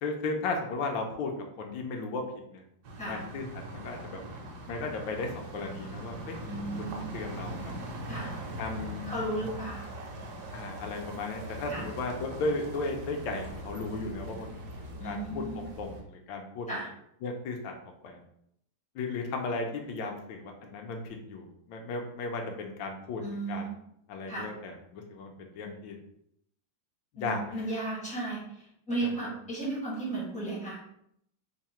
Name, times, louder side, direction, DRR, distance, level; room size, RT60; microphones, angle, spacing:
voice 1, 0.0-1.3 1.6-2.2 2.5-2.6 3.1-4.2 4.7-6.4 6.8-7.6 8.6-9.1 10.5-14.5 15.0-16.7 17.2-17.7 18.0-18.2 18.9-23.7 24.1-25.9 27.1-27.6 29.0-29.2, left 3 dB, 75° left, 3 dB, 1.3 m, -35 dB
sound 1, 2.8-16.0, right 1 dB, 65° right, 1.1 m, -41 dB
voice 2, 6.5-7.0 8.1-8.3 9.1-9.8 11.7-11.8 15.0-15.6 16.7-16.9 23.2-23.7 24.3-24.5 27.2-30.9, right 2 dB, 5° left, -6 dB, 0.5 m, -35 dB
3.7 x 2.1 x 4.2 m, 0.73 s
omnidirectional pair, 2.1 m